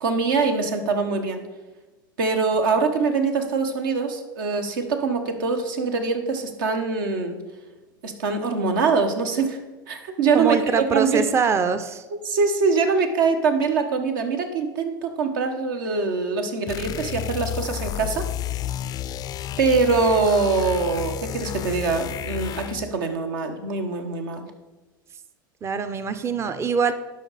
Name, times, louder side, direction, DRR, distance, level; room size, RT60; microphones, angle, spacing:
voice 1, 0.0-1.4 2.2-7.4 8.0-9.6 9.9-11.2 12.2-18.3 19.6-24.4, right 4 dB, 70° right, 5 dB, 1.2 m, -23 dB
voice 2, 10.3-12.0 25.6-26.9, right 5 dB, 25° right, 11 dB, 0.6 m, -23 dB
sound 1, 16.7-22.9, left 11 dB, 35° left, 0.4 m, -31 dB
12.0 x 5.2 x 4.1 m, 1.2 s
hypercardioid pair, 85°, 11 cm